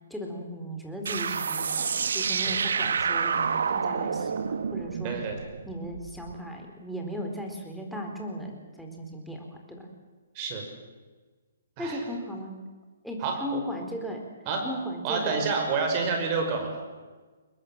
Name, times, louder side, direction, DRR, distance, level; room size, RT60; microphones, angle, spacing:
voice 1, 0.1-1.9 2.1-5.1 5.7-9.9 11.8-12.6 13.0-14.2 14.6-15.4, equal, ahead, 0 dB, 4.2 m, -36 dB
sound 1, 1.1-6.3, right 6 dB, 70° right, 1.3 m, -29 dB
voice 2, 5.0-5.4 10.3-10.6 11.8-12.0 13.2-13.6 14.5-14.7 15.0-16.8, right 4 dB, 35° right, 3 dB, 5.9 m, -29 dB
23.0 x 20.5 x 7.6 m, 1.3 s
figure-of-eight pair, 135°, 0 cm